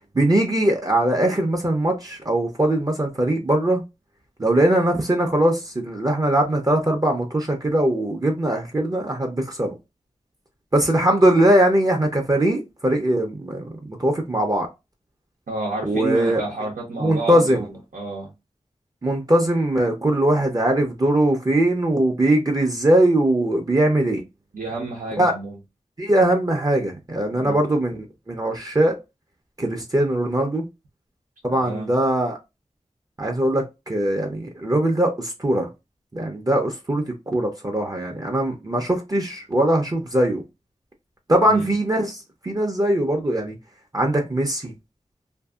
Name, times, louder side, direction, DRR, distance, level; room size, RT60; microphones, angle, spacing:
voice 1, 0.1-3.8 4.4-9.7 10.7-14.7 15.8-16.4 17.0-17.7 19.0-24.2 25.2-25.3 26.0-29.0 29.6-30.6 31.4-32.4 33.2-35.7 36.1-40.4 41.3-43.6 43.9-44.7, right 1 dB, 30° right, 0.6 m, -21 dB
voice 2, 15.5-18.3 24.5-25.6 27.3-27.6 31.5-31.9 41.4-41.7, right 2 dB, 90° right, 0.8 m, -30 dB
2.6 x 2.6 x 2.3 m
wide cardioid pair, 75°, 13 cm